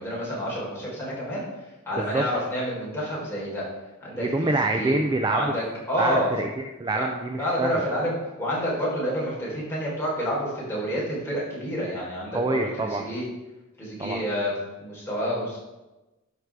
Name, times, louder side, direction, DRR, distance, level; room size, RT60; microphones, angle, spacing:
voice 1, 0.0-1.4 1.9-3.6 4.0-5.0 5.3-6.3 6.9-7.1 7.4-13.2 13.8-14.5 14.8-15.6, equal, 10° left, -6 dB, 3.8 m, -29 dB
voice 2, 4.1-5.5 6.0-7.9 12.3-13.0 14.0-14.2, right 2 dB, 20° right, 4 dB, 0.4 m, -26 dB
13.0 x 5.0 x 4.8 m, 1.1 s
head